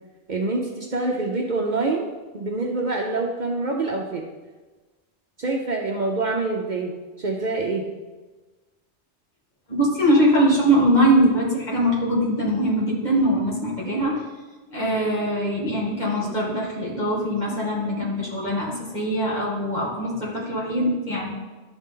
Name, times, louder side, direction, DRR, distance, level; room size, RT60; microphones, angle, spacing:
voice 1, 0.3-2.1 2.3-4.2 5.4-7.8, right 3 dB, 50° right, 0 dB, 0.8 m, -26 dB
voice 2, 9.7-14.2 14.7-21.3, equal, 40° left, -5 dB, 2.3 m, -22 dB
12.0 x 4.0 x 3.8 m, 1.2 s
omnidirectional pair, 1.1 m